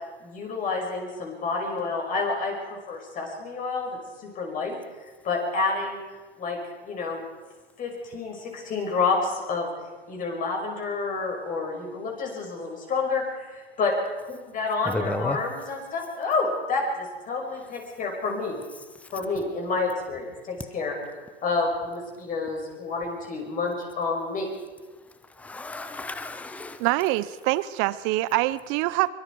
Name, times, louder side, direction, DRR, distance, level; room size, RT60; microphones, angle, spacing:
voice 1, 0.2-4.0 4.4-4.8 5.2-6.0 6.4-6.6 6.8-7.2 7.8-9.7 10.1-13.9 14.2-18.6 19.1-20.9 21.4-24.5, left 4 dB, 25° left, 1 dB, 5.8 m, -29 dB
voice 2, 14.8-15.4 25.4-26.8, left 2 dB, 5° left, 11 dB, 0.9 m, -32 dB
voice 3, 26.8-29.1, right 18 dB, 35° right, 18 dB, 0.8 m, -24 dB
24.0 x 23.0 x 4.8 m, 1.3 s
hypercardioid pair, 130°, 33 cm